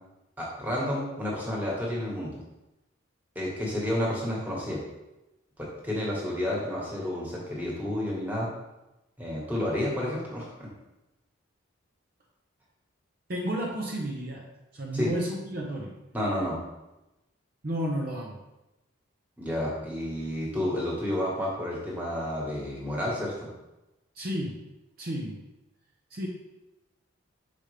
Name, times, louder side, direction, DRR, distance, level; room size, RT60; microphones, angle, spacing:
voice 1, 0.4-2.4 3.3-4.8 5.6-8.5 9.2-10.5 14.9-15.1 16.1-16.6 19.4-23.5, left 1 dB, 10° right, -4 dB, 1.5 m, -30 dB
voice 2, 13.3-14.5 14.7-16.0 17.6-18.4 24.1-24.7 25.0-25.5 26.1-26.3, equal, 45° right, -1 dB, 0.7 m, -32 dB
6.6 x 5.1 x 3.3 m, 0.98 s
head